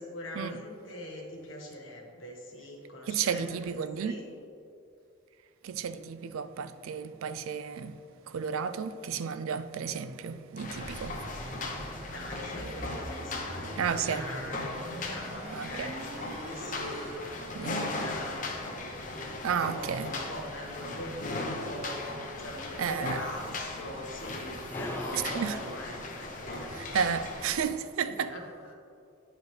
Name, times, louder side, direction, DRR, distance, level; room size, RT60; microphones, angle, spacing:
voice 1, 0.0-3.6 4.0-4.3 11.9-24.5 24.8-26.7 28.1-28.7, left 1 dB, 75° left, 1.4 m, -42 dB
voice 2, 3.1-4.2 5.6-11.3 13.8-14.2 15.5-15.9 17.5-17.8 19.4-20.1 22.8-23.2 25.1-25.6 26.7-28.4, right 6 dB, 90° right, 0.4 m, -32 dB
sound 1, 10.6-27.7, left 2 dB, 40° left, 0.8 m, -38 dB
sound 2, 10.7-17.2, right 1 dB, 35° right, 0.6 m, -43 dB
sound 3, 12.6-27.8, left 1 dB, 10° left, 0.4 m, -49 dB
10.5 x 4.9 x 3.2 m
head